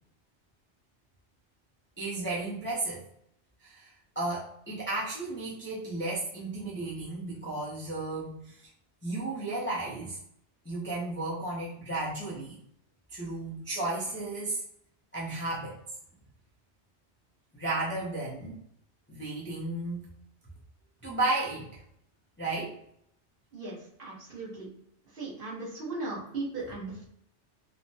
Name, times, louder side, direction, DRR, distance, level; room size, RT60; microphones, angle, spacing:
voice 1, 2.0-3.0 3.6-8.7 9.0-10.2 10.6-12.6 13.1-14.6 15.1-15.8 17.5-18.6 19.1-20.0 21.0-21.7 22.4-22.8, right 2 dB, 15° left, -7 dB, 0.4 m, -33 dB
voice 2, 23.5-24.7 25.1-27.1, right 3 dB, 50° right, -7 dB, 1.4 m, -37 dB
3.1 x 2.1 x 2.7 m, 0.72 s
omnidirectional pair, 1.2 m